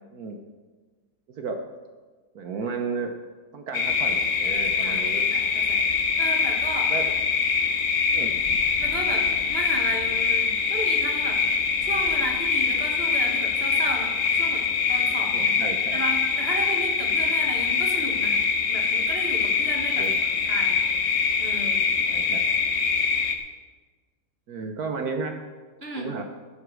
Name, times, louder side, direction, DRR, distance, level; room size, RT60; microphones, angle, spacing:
voice 1, 2.3-3.1 3.5-5.2 6.9-7.1 8.1-8.3 15.3-16.0 19.9-20.2 22.1-22.4 24.5-25.3 26.0-26.2, right 4 dB, 65° right, 4 dB, 1.4 m, -33 dB
sound 1, 3.7-23.4, left 5 dB, 50° left, 1.3 m, -24 dB
voice 2, 4.8-5.9 6.2-6.9 8.8-11.4 11.8-15.5 15.9-18.4 18.7-20.1 20.5-20.8 21.4-21.8 25.8-26.1, right 2 dB, 35° right, 1 dB, 2.0 m, -34 dB
14.0 x 7.9 x 6.3 m, 1.4 s
omnidirectional pair, 1.8 m